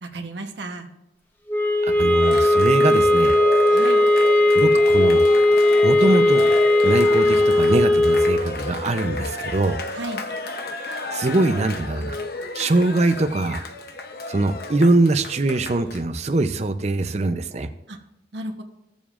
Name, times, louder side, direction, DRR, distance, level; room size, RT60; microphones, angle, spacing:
voice 1, 0.0-0.9 3.7-4.0 9.9-10.2 17.9-18.0 18.3-18.6, right 2 dB, 70° right, 4 dB, 1.1 m, -33 dB
sound 1, 1.5-8.5, left 1 dB, 10° left, 0.8 m, -17 dB
voice 2, 2.0-3.4 4.5-5.2 5.8-6.5 6.8-9.8 11.1-12.2 12.5-13.6 14.3-17.7, right 2 dB, 35° right, 8 dB, 0.6 m, -22 dB
Cheering, 2.2-16.0, left 2 dB, 55° left, 0.8 m, -32 dB
16.0 x 7.1 x 2.5 m, 0.89 s
head